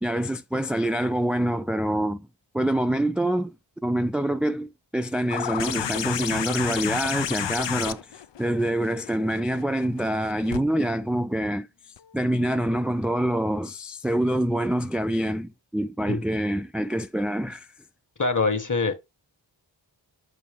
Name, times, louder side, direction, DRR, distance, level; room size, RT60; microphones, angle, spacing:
voice 1, 0.0-2.3 2.5-3.5 3.8-17.7, right 1 dB, ahead, 0.4 m, -26 dB
sound 1, 5.3-10.6 12.0-12.1, left 9 dB, 65° left, 0.6 m, -31 dB
voice 2, 18.2-18.9, left 3 dB, 40° left, 1.6 m, -24 dB
6.9 x 4.5 x 3.7 m
wide cardioid pair, 50°, 47 cm